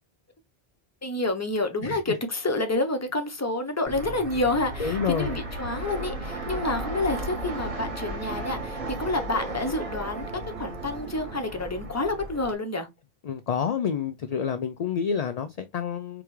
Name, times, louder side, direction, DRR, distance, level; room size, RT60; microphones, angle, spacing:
voice 1, 1.0-12.9, left 2 dB, 15° left, 0.7 m, -28 dB
Fixed-wing aircraft airplane, 3.9-12.5, right 1 dB, 35° right, 1.4 m, -36 dB
voice 2, 4.8-5.3 13.3-16.2, left 7 dB, 55° left, 0.5 m, -28 dB
sound 1, 6.3-11.4, right 5 dB, 70° right, 1.0 m, -39 dB
4.8 x 3.4 x 3.1 m
omnidirectional pair, 1.1 m